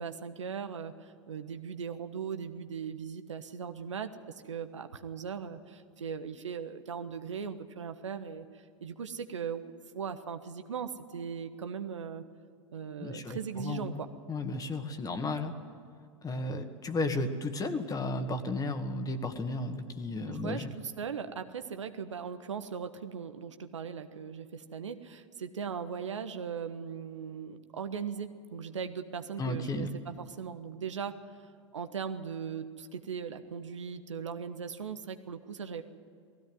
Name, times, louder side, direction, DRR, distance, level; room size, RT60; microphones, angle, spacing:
voice 1, 0.0-4.1 4.4-12.2 12.7-14.1 20.3-31.2 31.7-35.8, right 6 dB, 80° right, 8 dB, 1.3 m, -39 dB
voice 2, 13.0-14.0 14.3-15.5 16.2-20.7 29.4-29.9, left 2 dB, 25° left, 8 dB, 2.0 m, -34 dB
19.5 x 16.0 x 9.6 m, 2.2 s
hypercardioid pair, 90°, 15 cm